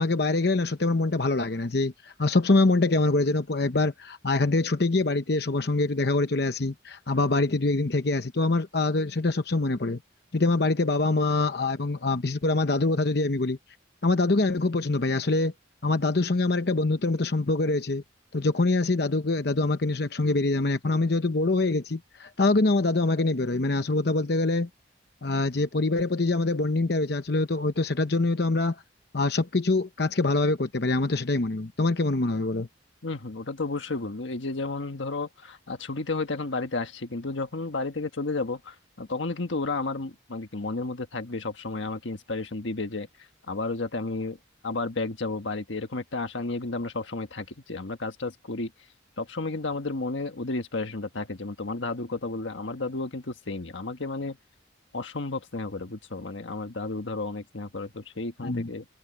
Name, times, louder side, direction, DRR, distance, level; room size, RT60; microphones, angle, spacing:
voice 1, 0.0-10.0 10.3-13.6 14.0-15.5 15.8-18.0 18.3-24.7 25.2-28.8 29.1-32.7 58.4-58.7, left 2 dB, 55° left, 0.9 m, -24 dB
voice 2, 33.0-43.1 43.5-44.4 44.6-48.7 49.2-54.4 54.9-58.9, left 3 dB, 80° left, 1.5 m, -32 dB
head